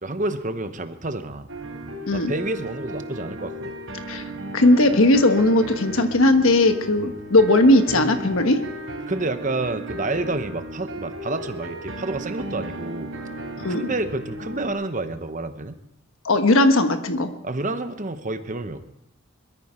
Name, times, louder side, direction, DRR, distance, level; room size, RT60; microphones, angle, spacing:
voice 1, 0.0-1.5 2.1-3.7 7.0-7.1 9.1-13.1 13.7-15.8 17.4-18.8, right 2 dB, 35° right, 9 dB, 1.0 m, -29 dB
sound 1, 1.5-14.7, right 1 dB, 65° right, 3.8 m, -35 dB
voice 2, 4.5-8.6 13.6-13.8 16.2-17.3, left 1 dB, 70° left, 7 dB, 1.3 m, -18 dB
22.0 x 13.5 x 4.4 m, 0.78 s
head